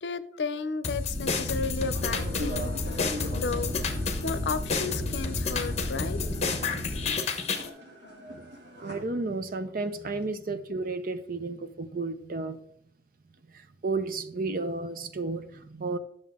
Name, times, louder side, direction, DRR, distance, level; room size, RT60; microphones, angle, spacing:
voice 1, 0.0-3.7 4.2-6.2 6.9-7.2 7.6-8.5, left 4 dB, 80° left, 14 dB, 0.6 m, -34 dB
sound 1, 0.8-7.7, left 4 dB, 40° left, 1.0 m, -31 dB
Boat Water vehicle, 1.1-7.1, left 1 dB, 25° right, 2.6 m, -37 dB
sound 2, 1.9-8.9, equal, 85° right, 2.3 m, -42 dB
voice 2, 8.8-12.6 13.5-16.0, right 3 dB, 55° right, 10 dB, 0.7 m, -32 dB
10.5 x 6.5 x 3.6 m, 0.69 s
head